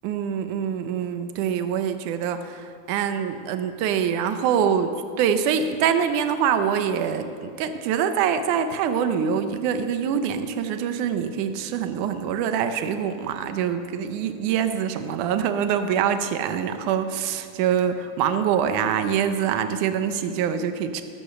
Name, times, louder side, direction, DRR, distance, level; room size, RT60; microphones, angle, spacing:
voice 1, 0.0-21.0, right 8 dB, 80° right, 8 dB, 1.8 m, -25 dB
14.0 x 13.5 x 6.7 m, 2.2 s
omnidirectional pair, 4.6 m